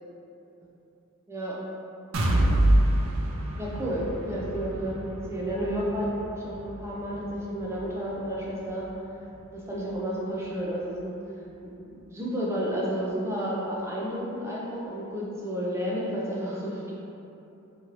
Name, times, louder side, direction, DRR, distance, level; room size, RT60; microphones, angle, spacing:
sound 1, 2.1-9.9 10.3-10.4 10.9-11.0, right 1 dB, 70° right, 0.4 m, -28 dB
voice 1, 3.6-6.1 6.3-8.9 9.5-11.1 11.6-16.9, equal, 10° right, -5 dB, 0.4 m, -31 dB
3.1 x 2.5 x 2.9 m, 2.8 s
head